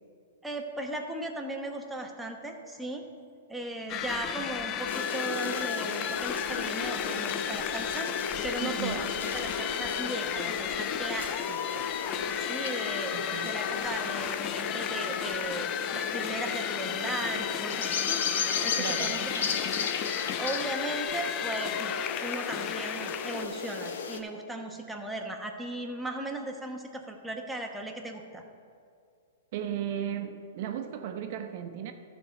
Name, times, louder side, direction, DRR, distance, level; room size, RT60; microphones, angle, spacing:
voice 1, 0.4-3.0 3.5-8.1 8.4-11.9 12.4-13.1 13.5-18.2 18.6-19.7 20.4-21.9 22.2-28.4, right 2 dB, 5° right, 1 dB, 1.1 m, -37 dB
sound 1, 3.9-23.5, left 10 dB, 30° left, 0.4 m, -34 dB
sound 2, 4.9-24.2, left 5 dB, 70° left, 0.8 m, -35 dB
voice 2, 8.6-9.1 13.1-13.6 18.8-19.2 29.5-31.9, right 9 dB, 50° right, 6 dB, 0.9 m, -35 dB
13.0 x 4.5 x 6.6 m, 2.3 s
hypercardioid pair, 135°, 0 cm